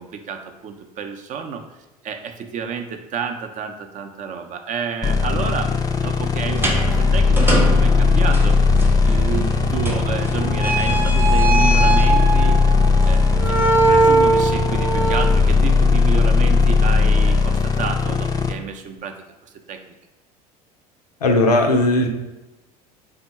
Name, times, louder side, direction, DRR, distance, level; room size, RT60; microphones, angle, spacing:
voice 1, 0.0-1.6 2.0-5.7 6.0-8.6 9.0-12.6 13.1-19.8, right 6 dB, 40° right, 6 dB, 0.5 m, -30 dB
sound 1, 5.0-18.5, left 4 dB, 20° left, 0.4 m, -18 dB
sound 2, 6.5-17.4, right 2 dB, 10° right, 0.8 m, -22 dB
voice 2, 21.2-22.1, left 2 dB, 90° left, 3 dB, 0.5 m, -17 dB
3.6 x 2.1 x 4.1 m, 1.1 s
hypercardioid pair, 70°, 19 cm